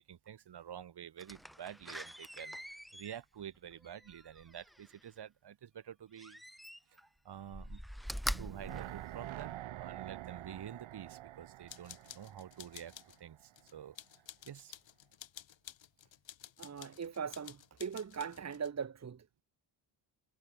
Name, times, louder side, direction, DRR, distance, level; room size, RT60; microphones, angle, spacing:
voice 1, 0.0-6.4 6.9-7.8 8.4-14.0 14.5-14.8, right 9 dB, 55° right, 2.2 m, -49 dB
Slam, 1.2-5.0 6.1-7.1 7.4-9.7 10.2-10.3, equal, ahead, 2.3 m, -44 dB
sound 1, 8.3-13.5 13.8-13.9, right 14 dB, 80° right, 1.3 m, -47 dB
sound 2, 11.7-13.2 13.6-18.7, left 10 dB, 70° left, 4.0 m, -53 dB
voice 2, 16.6-19.4, right 6 dB, 35° right, 1.4 m, -40 dB
cardioid pair, 85°, 47 cm